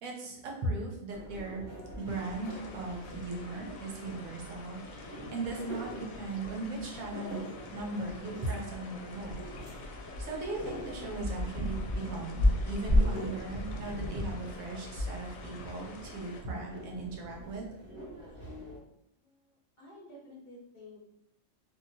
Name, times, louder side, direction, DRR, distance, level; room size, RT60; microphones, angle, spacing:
voice 1, 0.0-1.6 2.0-9.4 10.0-17.7 18.4-18.5, right 2 dB, 75° right, 0 dB, 1.1 m, -38 dB
sound 1, 1.1-18.8, left 1 dB, 25° right, 0.8 m, -36 dB
sound 2, 2.1-16.4, left 3 dB, 75° left, 1.0 m, -48 dB
voice 2, 19.2-21.1, left 1 dB, 40° left, -7 dB, 1.0 m, -52 dB
2.8 x 2.7 x 2.7 m, 0.79 s
omnidirectional pair, 1.4 m